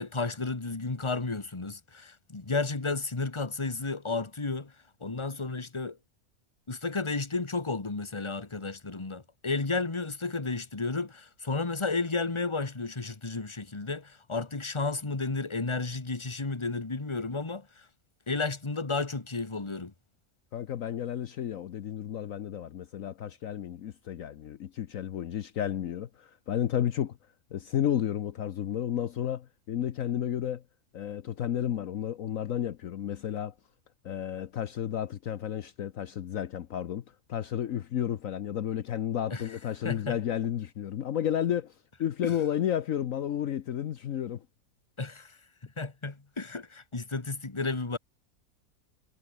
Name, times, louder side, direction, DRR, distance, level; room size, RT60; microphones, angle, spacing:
voice 1, 0.0-4.7 5.0-6.0 6.7-17.9 18.3-19.9 39.3-39.4 39.8-40.2 42.2-42.3 45.0-48.0, left 3 dB, 20° left, 1.6 m, -32 dB
voice 2, 20.5-27.2 27.5-30.6 30.9-33.5 34.0-37.0 37.3-44.5, left 10 dB, 65° left, 1.2 m, -32 dB
omnidirectional pair, 1.6 m